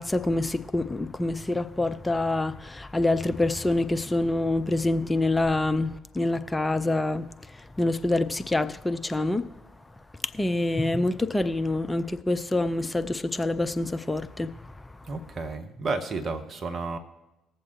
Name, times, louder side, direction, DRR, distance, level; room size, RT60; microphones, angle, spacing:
voice 1, 0.0-9.5 10.2-14.9, left 2 dB, 15° left, 0.5 m, -26 dB
voice 2, 15.1-17.0, right 3 dB, 35° right, 1.4 m, -32 dB
20.0 x 7.4 x 3.1 m
figure-of-eight pair, 50°, 0 cm